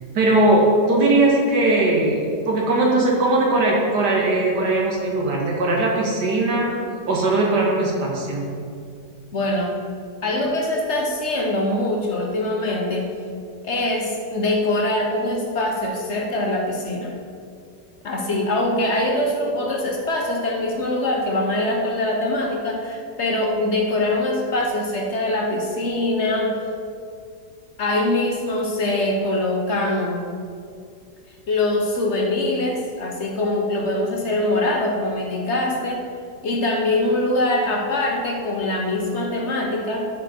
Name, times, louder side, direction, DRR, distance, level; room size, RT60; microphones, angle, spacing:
voice 1, 0.1-2.2 2.5-6.7 7.1-8.5, right 2 dB, 90° right, -2 dB, 2.2 m, -19 dB
voice 2, 9.3-9.8 10.2-13.1 13.6-17.1 18.0-26.6 27.8-30.3 31.5-36.0 36.4-40.1, left 1 dB, 50° left, 0 dB, 1.1 m, -23 dB
12.5 x 5.0 x 4.4 m, 2.3 s
omnidirectional pair, 1.7 m